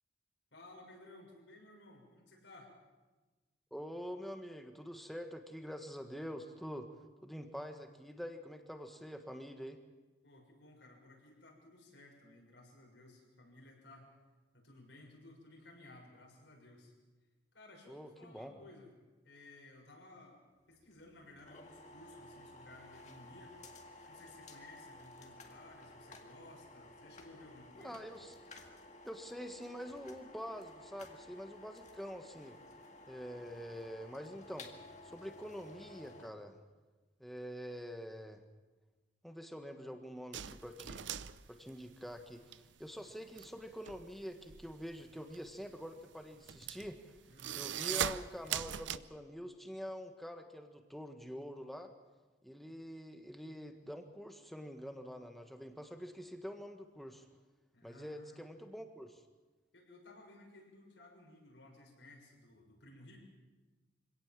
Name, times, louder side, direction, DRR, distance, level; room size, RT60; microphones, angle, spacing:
voice 1, 0.5-2.7 10.2-14.1 14.5-16.9 17.5-18.9 19.2-20.4 20.7-23.6 24.0-28.0 47.3-47.6 57.7-58.5 59.7-63.2, left 2 dB, 80° left, 0 dB, 6.4 m, -57 dB
voice 2, 3.7-6.9 7.2-9.8 17.9-18.5 27.8-28.3 29.0-32.6 33.1-34.7 35.0-36.6 37.2-38.4 39.2-41.1 41.5-47.0 47.5-51.9 52.4-57.3 57.8-59.2, equal, ahead, 5 dB, 1.5 m, -46 dB
sound 1, 20.7-36.3, left 2 dB, 40° left, 2.0 m, -55 dB
sound 2, 40.3-42.6 42.9-49.0, right 9 dB, 85° right, 0.7 m, -40 dB
25.0 x 17.5 x 7.5 m, 1.2 s
head